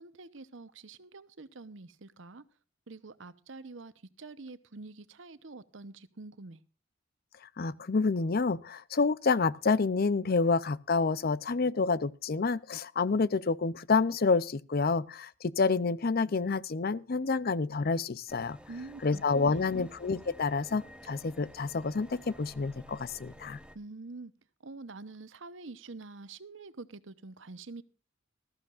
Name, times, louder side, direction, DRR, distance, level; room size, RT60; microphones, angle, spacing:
voice 1, 0.0-2.4 2.9-6.6 18.7-19.9 23.7-24.3 24.6-27.8, right 3 dB, 70° right, 1.0 m, -46 dB
voice 2, 7.6-18.6 19.0-23.6, left 4 dB, 50° left, 0.6 m, -28 dB
sound 1, 18.3-23.8, equal, 5° right, 0.9 m, -52 dB
19.0 x 14.0 x 2.5 m
head